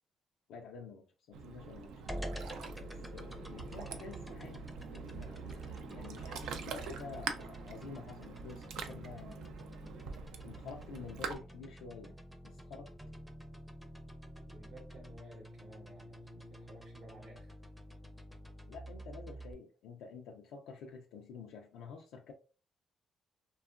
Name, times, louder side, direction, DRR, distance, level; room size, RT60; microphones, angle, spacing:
voice 1, 0.5-2.0 2.7-4.6 4.9-9.7 10.4-12.2 12.4-12.9 18.7-22.3, left 5 dB, 90° left, 0.4 m, -49 dB
Ocean, 1.3-11.4, right 6 dB, 90° right, 0.4 m, -44 dB
sound 1, 2.1-19.5, equal, 5° right, 0.5 m, -48 dB
voice 2, 14.5-17.5, right 1 dB, 65° right, 0.7 m, -56 dB
2.7 x 2.3 x 2.4 m
cardioid pair, 90°, 0 cm